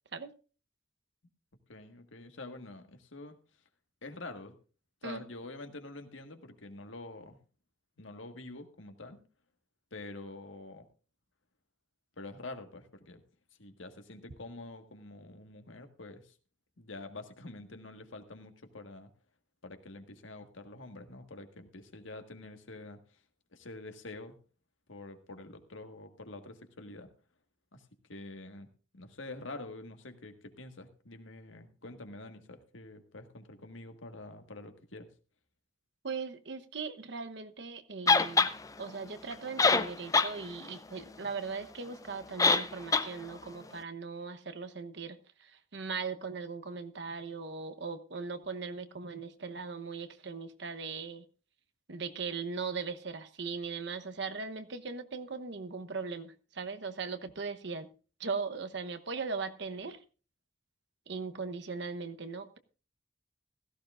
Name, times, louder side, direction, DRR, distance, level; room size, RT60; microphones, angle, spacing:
voice 1, 1.7-3.4 4.0-4.6 5.0-7.4 8.0-9.3 9.9-10.9 12.2-13.2 13.6-16.3 16.8-19.1 19.6-23.0 23.5-24.4 24.9-27.1 27.7-28.7 28.9-35.1, left 2 dB, 90° left, 1.7 m, -46 dB
voice 2, 36.0-38.5 38.8-51.2 51.9-57.9 58.2-60.0 61.1-62.6, right 4 dB, 65° right, 1.0 m, -39 dB
sound 1, 38.1-38.5 39.3-39.4 39.6-40.3 40.7-40.8 42.4-42.7 42.9-43.1, left 4 dB, 20° left, 0.5 m, -23 dB
16.5 x 14.5 x 2.5 m
head